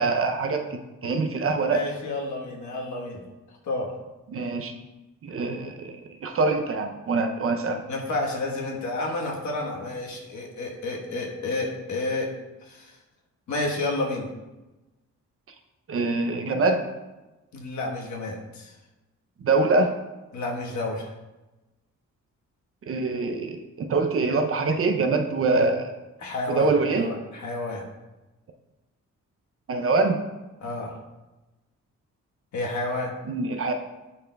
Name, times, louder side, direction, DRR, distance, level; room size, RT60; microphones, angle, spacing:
voice 1, 0.0-1.8 4.3-4.7 5.2-7.8 15.9-16.8 19.4-19.9 22.9-25.9 26.5-27.1 29.7-30.2 33.3-33.7, right 3 dB, 45° right, 5 dB, 0.5 m, -24 dB
voice 2, 1.7-3.2 3.6-3.9 7.9-12.3 12.6-13.0 13.5-14.3 17.5-18.8 20.3-21.1 26.2-27.8 30.6-31.0 32.5-33.1, left 2 dB, 65° left, -1 dB, 1.3 m, -30 dB
9.9 x 4.2 x 2.2 m, 1.1 s
wide cardioid pair, 135°, 31 cm